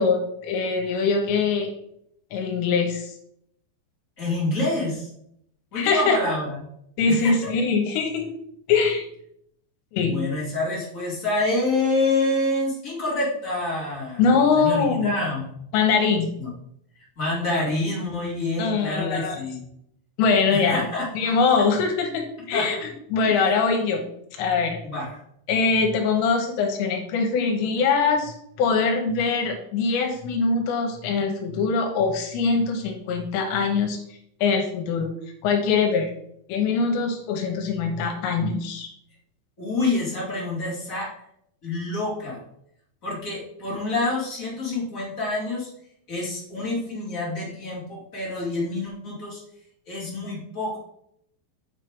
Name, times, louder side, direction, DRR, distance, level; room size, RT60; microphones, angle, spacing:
voice 1, 0.0-1.8 2.3-3.1 5.8-6.2 7.0-8.3 8.7-9.0 9.9-10.2 14.2-15.2 15.7-16.3 18.6-19.4 20.2-20.9 21.1-24.1 24.4-24.8 25.5-34.0 34.4-35.1 35.4-36.1 36.5-38.9, left 5 dB, 80° left, 3 dB, 3.1 m, -23 dB
voice 2, 4.2-5.1 5.7-6.6 7.1-7.5 10.0-15.6 16.4-16.5 17.2-19.6 20.5-21.3 22.5-22.7 23.2-23.4 24.8-25.2 39.6-41.1 41.6-42.4 43.0-45.7 46.1-49.4 49.9-50.8, left 2 dB, 40° left, -5 dB, 1.1 m, -27 dB
9.0 x 4.5 x 3.6 m, 0.72 s
omnidirectional pair, 5.2 m